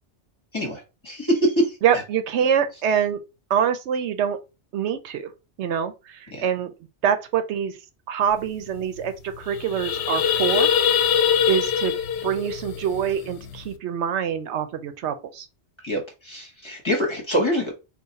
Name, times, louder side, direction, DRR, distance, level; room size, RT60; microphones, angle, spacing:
voice 1, 0.5-1.8 6.3-6.5 15.8-17.8, equal, 25° left, 1.3 m, -24 dB
voice 2, 1.8-3.2 3.5-4.4 4.7-5.3 5.6-6.7 7.0-7.8 8.1-10.7 11.5-15.5, right 8 dB, 80° right, 0.9 m, -25 dB
sound 1, 8.4-8.5 8.8-9.0 9.3-13.7, left 8 dB, 75° left, 0.8 m, -23 dB
3.9 x 2.3 x 4.0 m
omnidirectional pair, 1.1 m